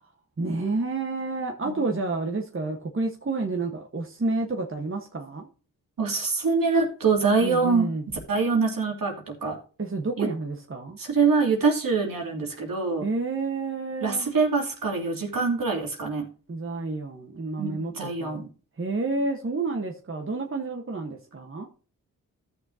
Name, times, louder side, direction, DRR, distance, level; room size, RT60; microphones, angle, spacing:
voice 1, 0.4-5.5 7.4-8.0 9.8-11.0 13.0-14.4 16.5-18.5 18.8-21.7, right 3 dB, 35° right, 2 dB, 1.3 m, -30 dB
voice 2, 6.0-7.9 8.3-9.6 10.2-10.3 11.0-13.1 14.0-16.3 17.6-18.5, right 4 dB, 65° right, 1 dB, 2.7 m, -24 dB
14.0 x 6.7 x 2.8 m, 0.37 s
cardioid pair, 45°, 36 cm